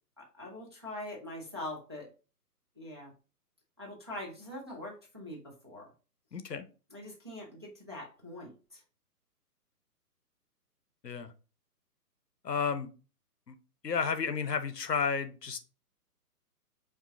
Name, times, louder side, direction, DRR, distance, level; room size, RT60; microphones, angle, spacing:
voice 1, 0.2-2.1 2.8-3.1 3.8-5.9 6.9-8.8, left 1 dB, 20° right, 0.4 m, -43 dB
voice 2, 6.3-6.7 11.0-11.3 12.4-12.9 13.5-13.6 13.8-15.6, left 6 dB, 90° left, 0.8 m, -32 dB
5.0 x 2.7 x 3.6 m
figure-of-eight pair, 135°, 48 cm